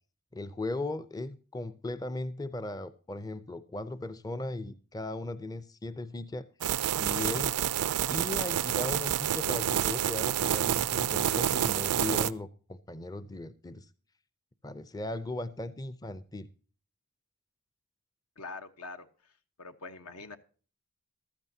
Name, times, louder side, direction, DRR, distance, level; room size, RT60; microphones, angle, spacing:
voice 1, 0.3-6.5 7.0-7.6 8.1-13.9 14.6-16.5, left 2 dB, 15° left, 0.5 m, -37 dB
sound 1, 6.6-12.3, right 10 dB, 85° right, 0.4 m, -28 dB
voice 2, 18.4-19.1 19.6-20.4, left 3 dB, 75° left, 1.1 m, -43 dB
14.5 x 13.0 x 2.7 m
head